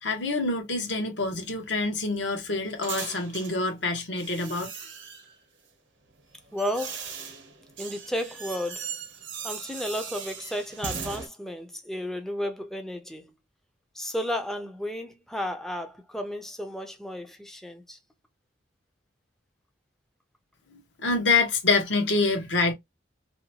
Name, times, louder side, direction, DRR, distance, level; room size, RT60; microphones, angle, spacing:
voice 1, 0.0-4.7 20.7-22.7, left 3 dB, 70° left, 0.9 m, -26 dB
sound 1, 1.2-3.6 4.2-5.4 6.1-11.3, right 6 dB, 85° right, 0.8 m, -39 dB
voice 2, 6.5-7.1 7.8-8.9 9.4-13.3 13.9-18.0, left 1 dB, ahead, 0.4 m, -33 dB
2.7 x 2.2 x 2.7 m
head